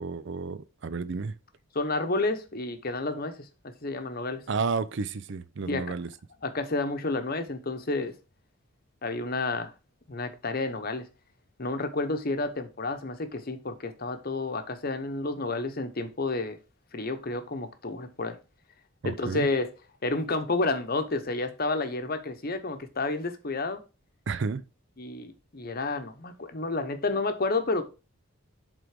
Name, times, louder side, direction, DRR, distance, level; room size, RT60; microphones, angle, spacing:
voice 1, 0.0-1.4 4.5-6.1 19.0-19.5 24.3-24.6, right 4 dB, 55° right, 0.5 m, -31 dB
voice 2, 1.7-4.4 5.7-5.8 6.4-8.1 9.0-9.7 10.1-11.1 11.6-16.6 16.9-18.4 19.0-19.7 20.0-23.8 25.0-27.8, left 3 dB, 45° left, 0.9 m, -30 dB
7.9 x 3.8 x 5.0 m
head